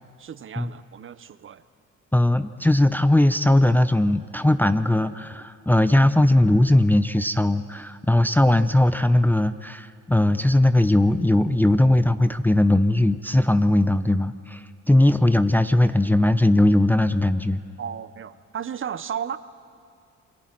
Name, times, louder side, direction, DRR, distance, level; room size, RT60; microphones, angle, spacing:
voice 1, 0.2-1.6 17.8-19.4, right 8 dB, 45° right, 14 dB, 0.7 m, -34 dB
voice 2, 2.1-17.6, left 1 dB, 5° left, 11 dB, 0.6 m, -19 dB
28.5 x 22.5 x 4.5 m, 2.3 s
cardioid pair, 90°, 30 cm